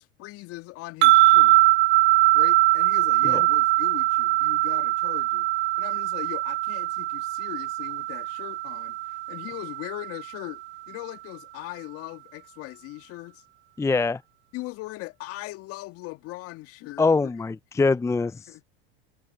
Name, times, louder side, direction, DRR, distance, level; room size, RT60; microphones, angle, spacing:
voice 1, 0.0-1.6 2.3-5.5 5.8-13.4 14.5-17.3 18.5-18.6, left 20 dB, 50° left, 2.1 m, -39 dB
sound 1, 1.0-10.3, right 18 dB, 40° right, 0.6 m, -22 dB
voice 2, 13.8-14.2 17.0-18.4, left 4 dB, 10° left, 0.7 m, -23 dB
hypercardioid pair, 90°, 29 cm